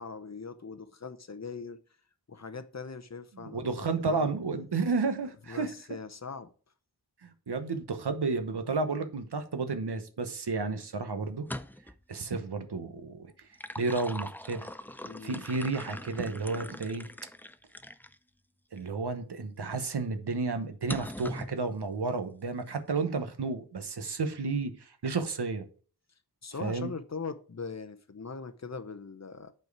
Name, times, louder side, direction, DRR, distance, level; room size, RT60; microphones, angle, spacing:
voice 1, 0.0-1.8 2.3-4.4 5.5-6.5 15.0-15.4 26.4-29.5, left 4 dB, 45° left, 0.8 m, -41 dB
voice 2, 3.4-5.7 7.2-11.5 12.1-13.3 13.8-14.7 15.2-17.1 18.7-25.6 26.6-26.9, right 4 dB, 85° right, 1.1 m, -32 dB
sound 1, 11.3-12.0 13.3-18.2 18.8-18.9 20.9-21.5, left 1 dB, 5° left, 0.4 m, -41 dB
8.4 x 4.6 x 4.7 m
wide cardioid pair, 70°, 39 cm